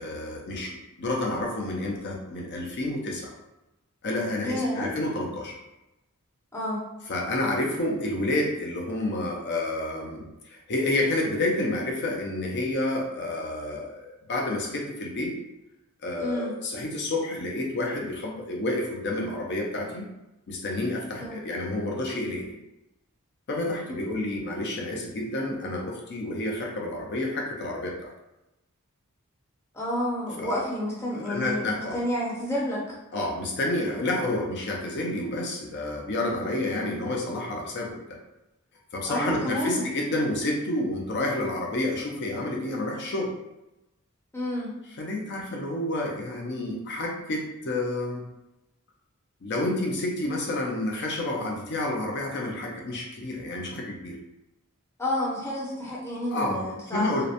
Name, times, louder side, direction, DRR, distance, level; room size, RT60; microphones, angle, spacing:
voice 1, 0.0-3.3 4.0-5.5 7.1-15.3 16.0-20.1 20.5-22.6 23.5-28.1 30.4-30.6 31.1-32.0 33.1-38.2 38.9-43.3 45.0-48.2 49.4-54.2 56.3-57.3, left 1 dB, 55° left, 0 dB, 0.5 m, -29 dB
voice 2, 4.4-4.9 6.5-6.8 16.2-16.5 21.2-21.4 24.1-24.2 29.7-32.8 39.1-39.9 44.3-44.7 55.0-57.3, left 1 dB, 10° left, -6 dB, 0.6 m, -30 dB
2.8 x 2.0 x 2.5 m, 0.95 s
head